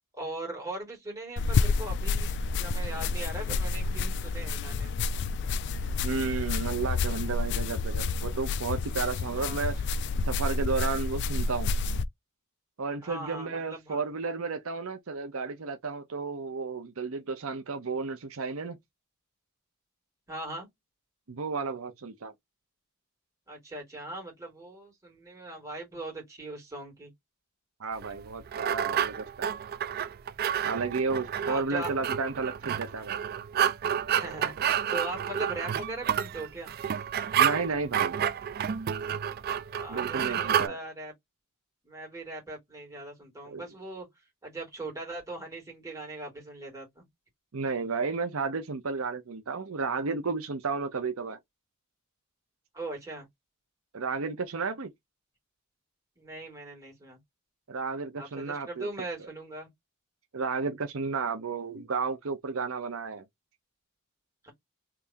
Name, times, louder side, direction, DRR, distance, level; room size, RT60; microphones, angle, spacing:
voice 1, 0.1-4.9 9.3-9.7 13.0-14.0 20.3-20.7 23.5-27.1 31.4-32.0 34.1-34.5 34.9-36.7 39.7-41.1 41.8-44.1 44.4-47.1 52.7-53.3 56.2-57.2 58.2-59.7 64.4-64.5, right 2 dB, 15° right, 2.4 m, -40 dB
sound 1, 1.4-12.1, left 4 dB, 55° left, 0.3 m, -29 dB
voice 2, 6.0-9.7 10.3-11.7 12.8-18.8 21.3-22.3 27.8-29.5 30.7-33.2 37.4-38.2 39.9-40.8 43.4-43.6 47.5-51.4 53.9-54.9 57.7-58.9 60.3-63.2, right 4 dB, 80° right, 0.7 m, -32 dB
sound 2, 28.0-40.7, right 9 dB, 45° right, 0.3 m, -30 dB
3.5 x 3.2 x 2.6 m
head